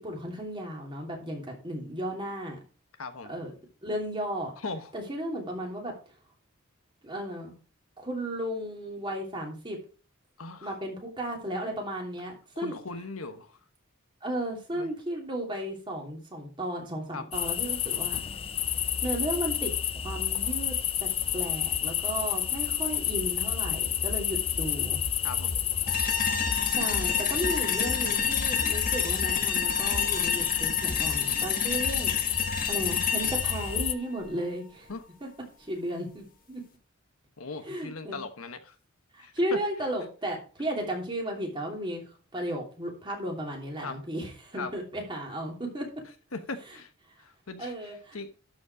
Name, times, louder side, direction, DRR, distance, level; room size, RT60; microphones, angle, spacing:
voice 1, 0.0-2.5 3.3-3.5 3.8-4.5 4.9-5.9 7.0-7.5 8.0-9.8 10.6-12.8 14.2-18.2 19.0-20.7 21.0-25.0 26.7-32.4 32.7-34.9 35.2-35.3 35.7-36.6 37.7-38.2 39.1-42.0 42.3-45.9 47.6-48.2, right 1 dB, 25° right, 2.9 m, -34 dB
voice 2, 3.0-3.4 4.6-4.9 10.4-10.7 12.6-13.6 14.7-14.9 17.1-17.3 25.2-25.6 34.9-35.1 37.4-38.8 39.2-39.6 43.8-44.0 44.6-44.7 46.3-46.9 47.2-48.3, left 3 dB, 90° left, 1.2 m, -39 dB
sound 1, 17.3-33.9, left 9 dB, 25° left, 0.4 m, -29 dB
sound 2, 25.9-34.9, left 5 dB, 40° left, 1.5 m, -31 dB
12.0 x 5.2 x 4.8 m
head